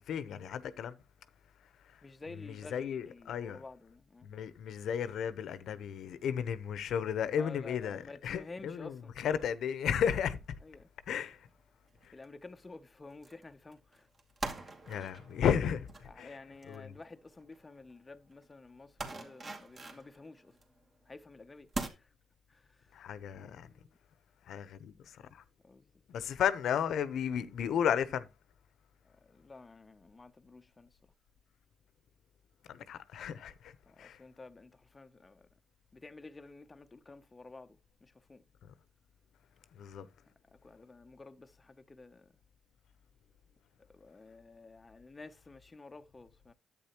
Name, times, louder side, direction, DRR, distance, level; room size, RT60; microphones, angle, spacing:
voice 1, 0.1-0.9 1.8-2.0 2.5-3.6 4.2-10.4 11.1-11.5 12.0-12.1 14.9-16.4 16.7-16.9 22.9-23.7 24.5-25.4 26.1-28.3 32.7-34.2 39.7-40.1, left 8 dB, 70° left, 0.8 m, -34 dB
voice 2, 2.0-4.3 7.4-9.1 10.6-10.9 12.1-14.1 14.5-14.9 16.0-20.6 21.1-22.1 22.5-23.0 23.6-24.0 25.6-26.0 29.0-31.0 33.8-35.5 35.9-38.4 40.5-42.4 43.8-46.5, left 3 dB, 20° left, 0.7 m, -52 dB
sound 1, 11.2-11.5 11.9-12.3 13.2-13.4 13.7-17.6 17.9-18.0 18.3-18.5 19.0-20.8 21.2-21.3 21.7-21.9, right 3 dB, 35° right, 2.3 m, -43 dB
10.5 x 8.6 x 2.9 m
cardioid pair, 90°, 0 cm